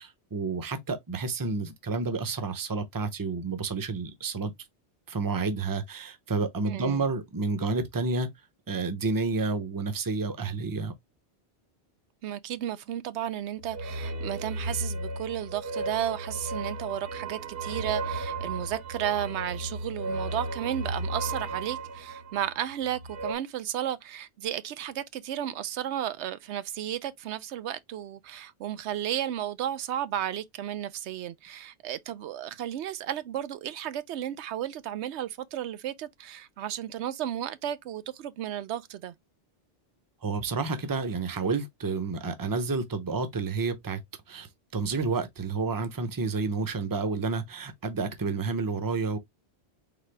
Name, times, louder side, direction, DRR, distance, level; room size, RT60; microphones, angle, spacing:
voice 1, 0.0-4.5 5.1-8.3 8.7-10.9 40.2-44.0 44.3-49.2, right 4 dB, 25° right, 0.6 m, -30 dB
voice 2, 6.7-7.1 12.2-39.1, right 11 dB, 85° right, 0.9 m, -33 dB
sound 1, 13.6-23.3, right 2 dB, 65° right, 1.1 m, -35 dB
4.0 x 3.7 x 3.2 m
omnidirectional pair, 1.1 m